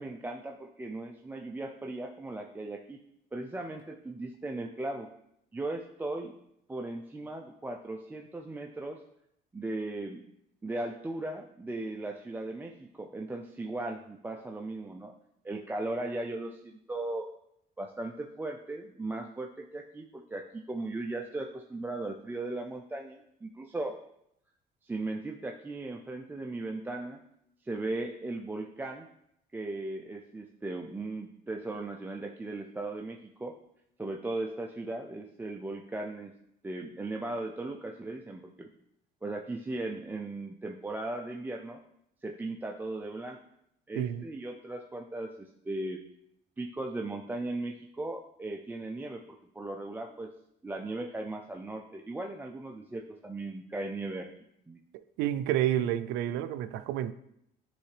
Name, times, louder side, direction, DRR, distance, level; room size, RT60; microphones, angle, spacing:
voice 1, 0.0-3.0 3.3-5.1 5.5-6.3 6.7-9.0 9.5-10.2 10.6-15.1 15.4-17.3 17.8-24.0 24.8-27.2 27.6-29.1 29.5-33.5 34.0-36.3 36.6-38.7 39.2-41.8 42.2-43.4 43.9-46.0 46.6-49.2 49.5-50.3 50.6-54.3 54.7-54.8, right 2 dB, 10° right, 0.4 m, -37 dB
voice 2, 55.2-57.1, right 12 dB, 90° right, 0.4 m, -29 dB
9.6 x 3.3 x 3.3 m
cardioid pair, 110°, 17 cm